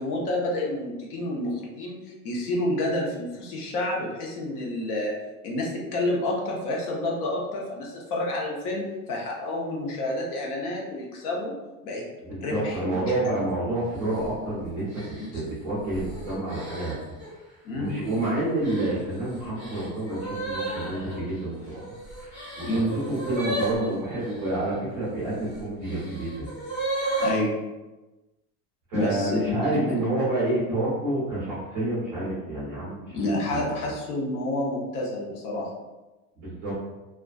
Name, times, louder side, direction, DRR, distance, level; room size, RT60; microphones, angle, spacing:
voice 1, 0.0-5.1 5.4-12.0 12.4-13.0 15.2-15.4 17.6-18.0 22.6-22.9 27.2-27.6 28.9-30.0 33.1-35.7, left 1 dB, 75° left, -2 dB, 0.9 m, -29 dB
voice 2, 12.2-16.9 17.3-17.4 17.7-21.8 22.2-22.8 23.1-26.4 28.9-33.2 33.5-33.9 36.4-36.7, right 1 dB, 20° right, -9 dB, 0.3 m, -29 dB
sound 1, 13.9-14.3 14.9-17.3 17.8-18.3 18.6-24.5 25.3-27.4, right 1 dB, 45° left, 1.1 m, -34 dB
2.4 x 2.3 x 2.3 m, 1.1 s
supercardioid pair, 175°, 44 cm